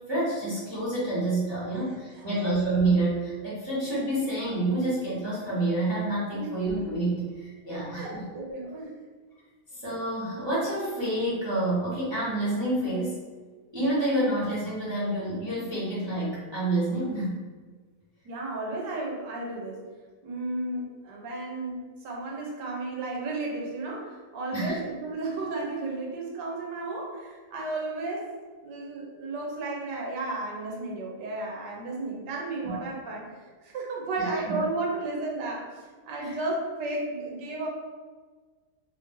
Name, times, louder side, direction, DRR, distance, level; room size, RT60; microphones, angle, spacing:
voice 1, 0.1-8.3 9.8-13.2 13.7-17.4 24.5-24.7 34.2-34.6 36.2-36.3, right 2 dB, 20° right, -10 dB, 0.9 m, -28 dB
voice 2, 7.7-8.9 18.2-19.9 20.2-28.3 28.6-33.3 33.6-35.7 36.1-37.7, right 2 dB, 90° right, -1 dB, 1.4 m, -33 dB
3.1 x 2.6 x 3.7 m, 1.4 s
omnidirectional pair, 1.8 m